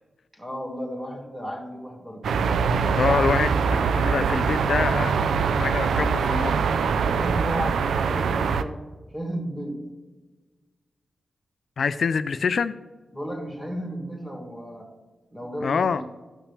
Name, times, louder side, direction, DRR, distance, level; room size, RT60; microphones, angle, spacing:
voice 1, 0.3-3.3 5.9-6.0 7.0-8.8 9.1-9.8 13.1-14.9 15.3-16.0, equal, 10° right, 1 dB, 2.8 m, -34 dB
sound 1, 2.2-8.6, right 5 dB, 85° right, 0.4 m, -23 dB
voice 2, 3.0-5.1 5.6-6.5 11.8-12.8 15.6-16.0, left 5 dB, 70° left, 12 dB, 0.3 m, -25 dB
13.5 x 5.9 x 3.4 m, 1.3 s
supercardioid pair, 45°, 0 cm